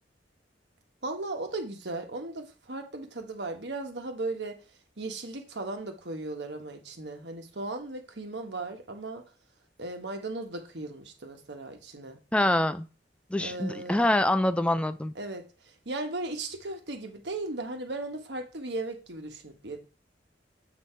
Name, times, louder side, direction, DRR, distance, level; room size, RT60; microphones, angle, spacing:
voice 1, 1.0-4.6 5.0-9.2 9.8-12.2 13.4-14.1 15.1-15.4 15.8-19.8, right 2 dB, 70° right, 1.4 m, -36 dB
voice 2, 12.3-12.9 13.3-15.1, left 1 dB, 5° left, 0.4 m, -25 dB
7.9 x 4.3 x 4.5 m
head